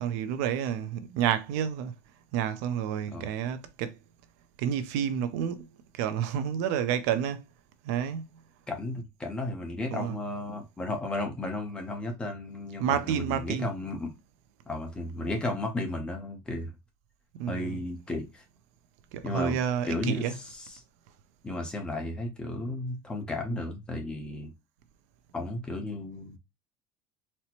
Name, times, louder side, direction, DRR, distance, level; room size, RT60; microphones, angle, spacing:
voice 1, 0.0-1.9 2.3-4.0 4.6-5.7 5.9-7.4 7.8-8.3 9.9-10.2 12.8-13.7 17.4-17.8 19.1-20.4, right 9 dB, 65° right, 0.5 m, -29 dB
voice 2, 8.7-14.1 14.7-16.7 17.5-18.4 19.2-19.6 19.8-20.2 21.4-24.5 25.3-26.4, left 2 dB, 10° left, 0.7 m, -34 dB
4.1 x 2.1 x 2.9 m
cardioid pair, 170°, 9 cm